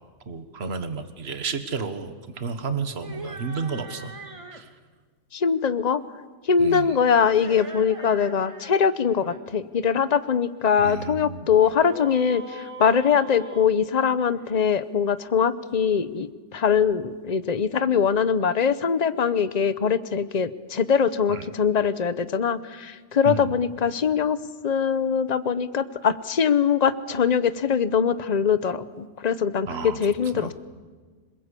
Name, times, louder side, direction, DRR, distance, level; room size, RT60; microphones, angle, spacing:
voice 1, 0.3-4.1 4.5-4.8 6.6-7.0 10.8-11.5 21.3-21.5 23.3-23.6 29.7-30.5, right 5 dB, 55° right, 10 dB, 1.7 m, -32 dB
sound 1, 2.9-4.7 7.2-8.7 9.0-9.4 11.6-14.5, right 2 dB, 25° right, 1.8 m, -41 dB
voice 2, 5.3-6.0 6.4-30.5, left 7 dB, 35° left, 14 dB, 1.0 m, -22 dB
26.5 x 21.5 x 8.4 m, 1.4 s
omnidirectional pair, 1.3 m